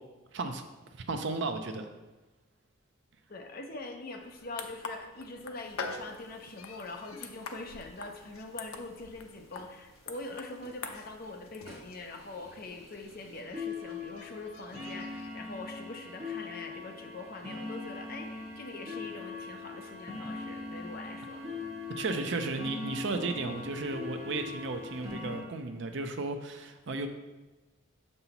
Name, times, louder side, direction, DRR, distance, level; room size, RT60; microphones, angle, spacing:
voice 1, 0.3-0.6 0.9-1.9 22.0-27.1, right 3 dB, 55° right, 7 dB, 0.5 m, -34 dB
voice 2, 3.3-21.5, left 2 dB, 45° left, 3 dB, 0.6 m, -43 dB
sound 1, 4.2-15.3, left 4 dB, 85° left, 0.6 m, -46 dB
sound 2, 5.7-5.8 6.1-6.2 6.3-6.5 6.9-7.2 8.0-8.1 8.6-8.7 9.1-9.2 9.5-9.6 10.1-10.2 10.6-10.8 11.2-11.3 11.6-25.4, left 3 dB, 30° right, 1.6 m, -41 dB
6.7 x 5.4 x 2.9 m, 1.1 s
head